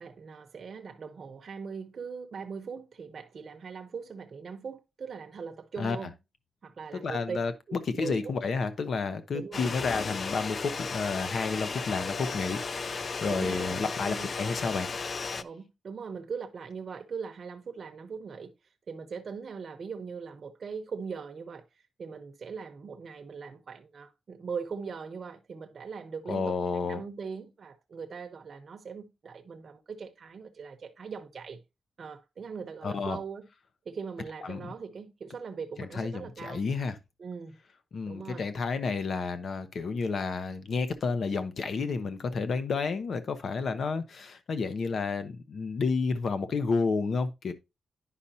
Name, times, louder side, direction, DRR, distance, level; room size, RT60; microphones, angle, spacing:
voice 1, 0.0-6.1 6.6-7.4 7.7-8.3 9.3-9.8 13.2-14.3 15.3-18.5 18.9-21.6 22.0-26.6 26.8-31.6 32.0-33.5 33.8-36.6 37.2-37.6 38.1-38.5, right 5 dB, 50° right, 0.8 m, -40 dB
voice 2, 6.9-12.6 12.9-14.9 26.3-27.0 32.8-33.2 34.4-34.7 35.8-37.0 37.9-47.5, left 4 dB, 55° left, 0.8 m, -31 dB
sound 1, 9.5-15.4, left 4 dB, 40° left, 0.3 m, -35 dB
10.0 x 5.5 x 2.7 m
wide cardioid pair, 150°, 0 cm